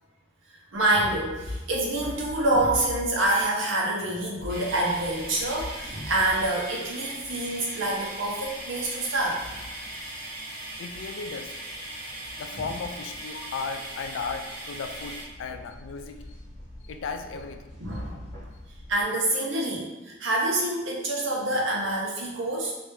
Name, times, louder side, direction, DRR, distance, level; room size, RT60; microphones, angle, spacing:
sound 1, 0.7-19.0, left 1 dB, 35° left, 1.1 m, -46 dB
voice 1, 0.7-9.4 12.5-12.6 17.8-18.2 18.9-22.7, right 1 dB, 80° right, -3 dB, 0.8 m, -26 dB
sound 2, 4.5-15.2, right 1 dB, 55° right, 1.0 m, -39 dB
voice 2, 10.8-11.5 12.1-16.2 16.8-17.7 18.1-18.2, left 5 dB, 75° left, 7 dB, 0.3 m, -36 dB
3.2 x 2.5 x 3.0 m, 1.1 s
head